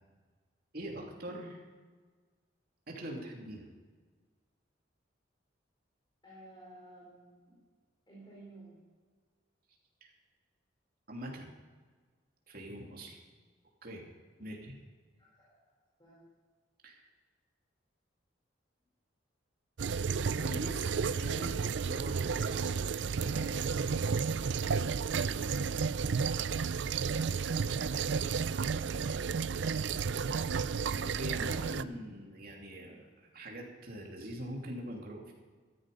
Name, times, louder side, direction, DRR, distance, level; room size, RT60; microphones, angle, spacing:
voice 1, 0.7-1.6 2.9-3.7 10.0-10.1 11.1-11.5 12.5-13.2 13.8-14.0 14.4-14.7 16.8-17.0 20.3-21.6 21.8-22.8 23.2-23.8 26.3-26.5 29.6-29.9 31.0-35.3, equal, 50° right, 0 dB, 2.9 m, -43 dB
voice 2, 6.2-7.6 8.1-8.8 14.4-14.6 15.1-15.7 16.0-16.3 25.4-25.9 29.8-30.6, right 1 dB, 25° left, -6 dB, 4.3 m, -54 dB
sound 1, 19.8-31.8, right 5 dB, 70° right, 0.5 m, -32 dB
14.0 x 13.0 x 5.4 m, 1.5 s
head